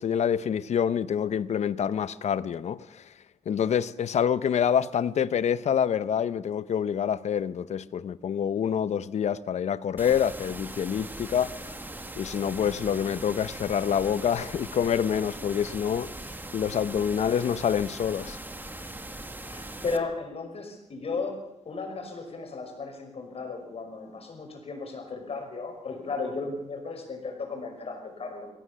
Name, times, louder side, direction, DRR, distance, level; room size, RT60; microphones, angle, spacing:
voice 1, 0.0-3.0 3.5-11.6 12.2-18.4, left 8 dB, 90° left, 0.7 m, -27 dB
sound 1, 10.0-20.0, right 1 dB, 15° right, 1.8 m, -40 dB
voice 2, 19.5-28.5, left 4 dB, 65° left, 5.8 m, -35 dB
23.5 x 16.5 x 6.8 m
cardioid pair, 90°, 11 cm